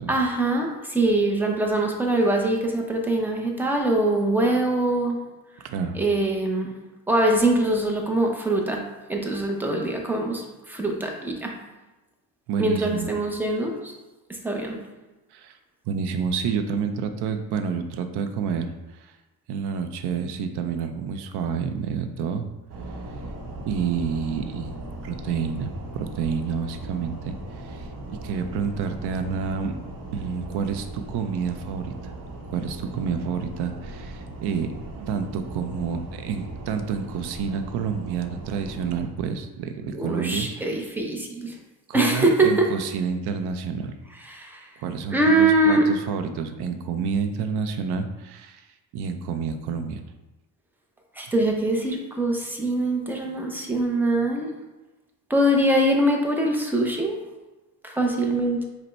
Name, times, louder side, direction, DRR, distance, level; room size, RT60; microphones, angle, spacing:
voice 1, 0.1-5.2 6.0-6.7 7.1-8.8 9.1-11.5 12.6-13.9 14.4-14.8 39.9-41.6 41.9-42.7 44.3-44.6 45.1-45.9 51.2-54.5 55.3-57.2 57.8-58.7, right 1 dB, 5° right, 1 dB, 0.6 m, -23 dB
voice 2, 5.6-6.0 12.5-13.1 15.3-15.6 15.9-19.1 19.5-22.5 23.7-24.7 25.0-29.7 30.1-32.1 32.5-40.8 41.9-43.9 44.8-48.7 48.9-50.0, right 6 dB, 90° right, 7 dB, 0.6 m, -29 dB
sound 1, 22.7-39.1, right 2 dB, 60° right, 0.8 m, -38 dB
5.2 x 2.1 x 4.3 m, 1.1 s
cardioid pair, 120°, 38 cm